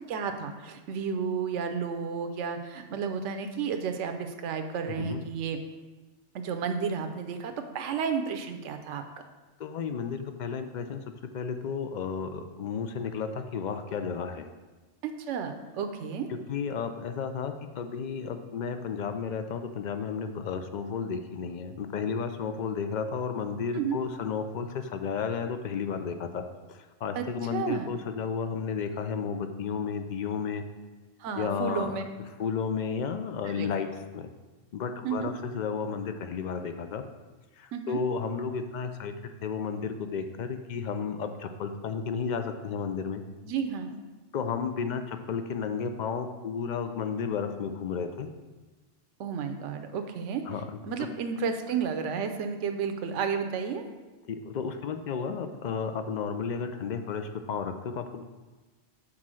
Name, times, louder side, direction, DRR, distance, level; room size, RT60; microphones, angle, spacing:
voice 1, 0.1-5.6 6.3-9.0 15.0-16.3 23.7-24.0 27.1-27.3 27.5-27.9 31.2-32.0 33.4-33.7 35.0-35.3 37.7-38.0 43.4-44.0 49.2-50.4 50.8-53.9, right 6 dB, 75° right, 7 dB, 1.0 m, -32 dB
voice 2, 9.6-11.0 11.3-14.5 16.5-30.6 31.3-32.0 32.4-34.3 34.7-37.0 37.6-43.2 44.3-48.3 50.5-50.6 54.3-58.2, left 6 dB, 60° left, 8 dB, 0.4 m, -33 dB
6.2 x 4.2 x 6.1 m, 1.2 s
omnidirectional pair, 1.3 m